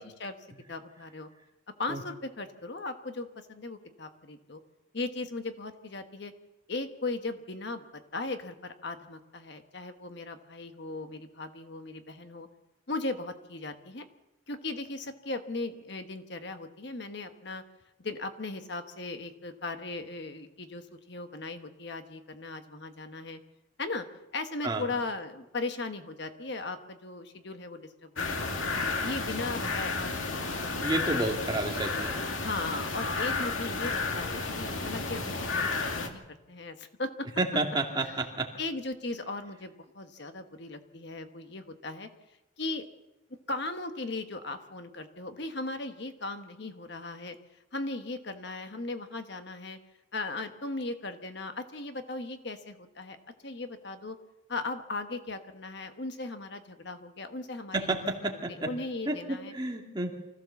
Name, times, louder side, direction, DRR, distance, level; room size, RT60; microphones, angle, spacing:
voice 1, 0.0-0.3 0.7-1.3 1.8-4.6 4.9-6.3 6.7-7.8 8.1-12.5 12.9-14.0 14.5-17.6 18.0-23.4 23.8-24.0 24.3-28.6 29.0-30.6 31.0-31.6 32.3-37.3 38.6-42.1 42.6-42.8 43.5-47.4 47.7-49.8 50.1-53.2 53.4-54.1 54.5-59.5, left 3 dB, 55° left, 7 dB, 1.3 m, -37 dB
sound 1, 28.2-36.1, left 3 dB, 80° left, 2.2 m, -32 dB
voice 2, 30.8-32.2 37.4-38.5 57.7-58.7 59.1-60.1, right 2 dB, 20° right, 1 dB, 2.4 m, -30 dB
24.5 x 15.5 x 7.1 m, 1.0 s
head